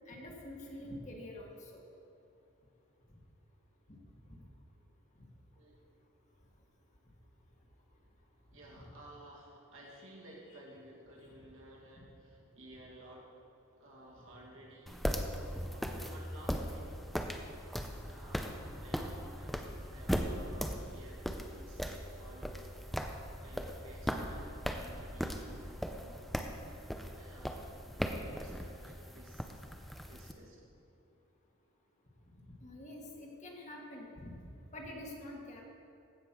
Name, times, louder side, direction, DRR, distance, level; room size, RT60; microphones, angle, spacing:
voice 1, 0.1-1.8 4.3-4.4 5.2-5.3 12.0-12.1 32.6-34.3 34.7-35.6, left 1 dB, 35° left, -1 dB, 1.5 m, -46 dB
voice 2, 8.5-13.4 13.8-15.0 15.4-17.2 18.1-23.0 23.4-26.3 26.7-27.7 28.1-29.5 30.1-30.7, right 1 dB, 65° right, -3 dB, 2.1 m, -55 dB
sound 1, 14.9-30.3, equal, ahead, 0.5 m, -39 dB
15.5 x 5.2 x 6.0 m, 2.7 s
head